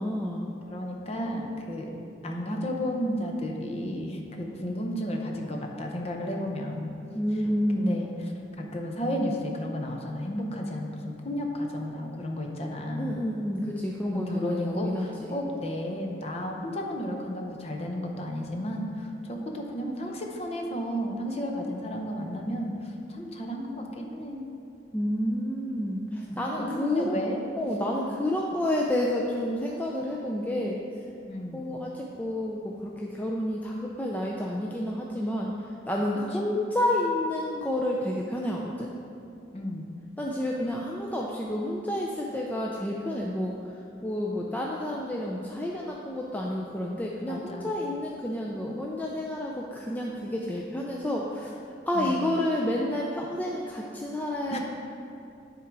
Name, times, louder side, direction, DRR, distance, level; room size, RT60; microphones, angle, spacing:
voice 1, 0.0-0.5 7.1-8.1 13.0-15.3 24.9-27.2 27.6-30.8 31.5-38.9 40.2-51.5 51.9-54.6, left 1 dB, 10° left, -2 dB, 0.4 m, -30 dB
voice 2, 0.7-6.9 7.7-8.3 8.6-13.1 14.1-24.4 26.1-27.4 31.3-31.6 36.4-36.6 39.5-39.9 47.3-47.7 51.9-52.3 54.5-54.6, equal, 35° left, 1 dB, 0.7 m, -33 dB
10.0 x 3.8 x 4.7 m, 2.7 s
head